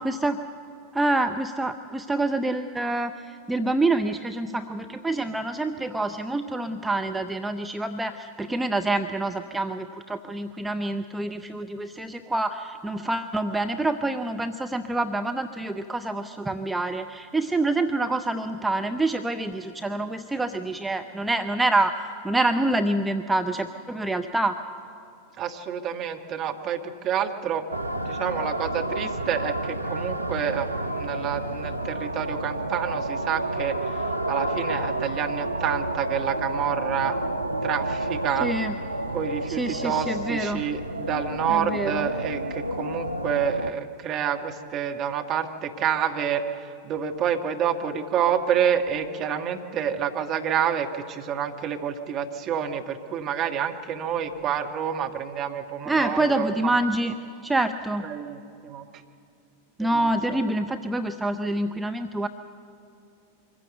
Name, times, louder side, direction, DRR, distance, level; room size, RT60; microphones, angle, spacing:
voice 1, 0.0-0.4 0.9-21.9 22.2-24.6 38.4-38.7 39.5-40.6 41.5-42.1 55.9-57.1 57.4-58.1 59.8-62.3, right 2 dB, 10° right, 6 dB, 0.6 m, -26 dB
voice 2, 25.4-27.7 27.9-38.5 39.1-56.7 58.0-58.9 59.8-60.0, right 8 dB, 35° right, 4 dB, 1.4 m, -28 dB
sound 1, 27.7-43.7, right 1 dB, 85° right, 0.5 m, -30 dB
24.0 x 15.5 x 7.9 m, 2.6 s
figure-of-eight pair, 90°, 0 cm